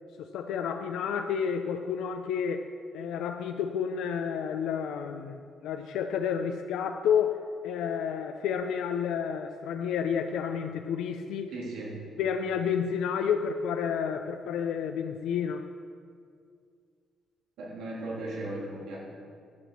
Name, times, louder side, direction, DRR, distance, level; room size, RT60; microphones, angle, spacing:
voice 1, 0.2-2.7 2.9-11.5 12.2-15.7, left 7 dB, 85° left, 6 dB, 0.5 m, -30 dB
voice 2, 11.5-12.0 17.6-19.0, right 2 dB, 85° right, -5 dB, 3.3 m, -36 dB
11.5 x 6.0 x 7.3 m, 2.2 s
cardioid pair, 170°, 0 cm